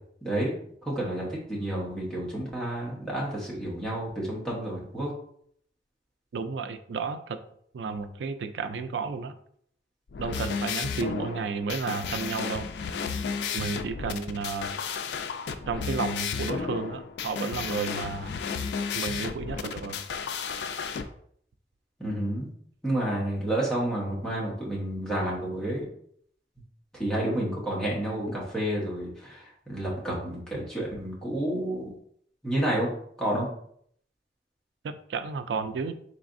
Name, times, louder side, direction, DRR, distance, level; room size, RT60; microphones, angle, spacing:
voice 1, 0.2-0.5 0.8-5.1 22.0-22.5 22.8-25.8 26.9-31.9 32.4-32.9 33.2-33.5, right 1 dB, 5° left, -6 dB, 1.0 m, -30 dB
voice 2, 6.3-7.4 7.7-9.3 10.2-12.7 13.5-14.7 15.7-18.4 18.9-20.0 34.8-36.0, right 5 dB, 85° right, 10 dB, 0.3 m, -32 dB
sound 1, 10.1-21.0, left 6 dB, 75° left, 0.3 m, -33 dB
4.0 x 3.3 x 2.5 m, 0.65 s
head